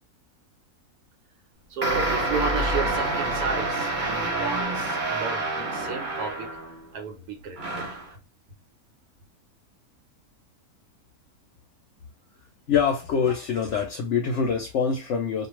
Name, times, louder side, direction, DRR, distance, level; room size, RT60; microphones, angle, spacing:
voice 1, 1.7-6.5 6.9-8.0, right 5 dB, 90° right, 1.2 m, -33 dB
sound 1, 1.8-6.9 7.6-8.1, right 2 dB, 40° right, 0.8 m, -27 dB
voice 2, 12.7-15.5, left 6 dB, 65° left, 0.8 m, -25 dB
2.5 x 2.3 x 3.0 m
omnidirectional pair, 1.6 m